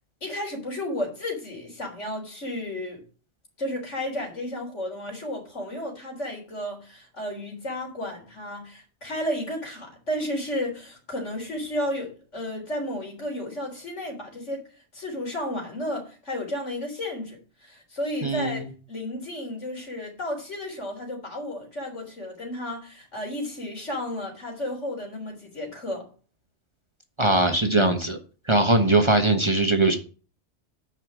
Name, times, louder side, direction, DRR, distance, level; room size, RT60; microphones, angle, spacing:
voice 1, 0.2-3.0 3.6-14.6 14.9-18.6 18.9-26.1, left 1 dB, 80° left, 4.1 m, -33 dB
voice 2, 18.2-18.7 27.2-28.2 28.5-30.0, right 2 dB, 25° right, 1.1 m, -21 dB
9.6 x 5.7 x 6.1 m
omnidirectional pair, 1.2 m